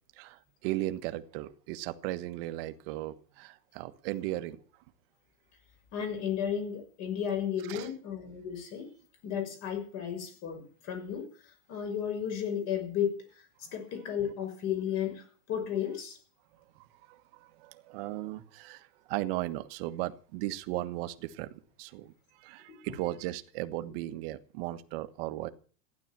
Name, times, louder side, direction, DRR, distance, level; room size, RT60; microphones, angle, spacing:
voice 1, 0.1-4.6 7.6-7.9 16.7-25.5, right 16 dB, 40° right, 10 dB, 1.5 m, -37 dB
voice 2, 5.9-8.9 9.2-11.3 11.7-13.2 13.7-16.2 22.7-22.8, left 9 dB, 35° left, 7 dB, 6.3 m, -33 dB
15.5 x 11.5 x 7.5 m, 0.42 s
supercardioid pair, 170°, 44 cm